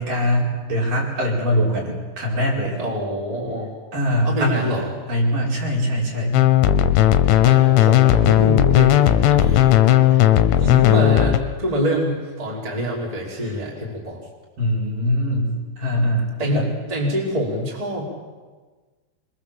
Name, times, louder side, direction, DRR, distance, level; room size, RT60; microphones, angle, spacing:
voice 1, 0.0-2.8 3.9-4.8 5.1-6.4 10.1-10.2 13.4-13.5 14.6-16.7, equal, 45° right, -4 dB, 6.2 m, -22 dB
voice 2, 2.8-3.7 4.2-4.9 7.4-9.7 10.6-14.2 16.4-18.1, equal, 10° right, -3 dB, 4.2 m, -25 dB
sound 1, 6.3-11.4, left 12 dB, 75° left, 3.3 m, -15 dB
26.5 x 23.0 x 7.5 m, 1.4 s
omnidirectional pair, 5.6 m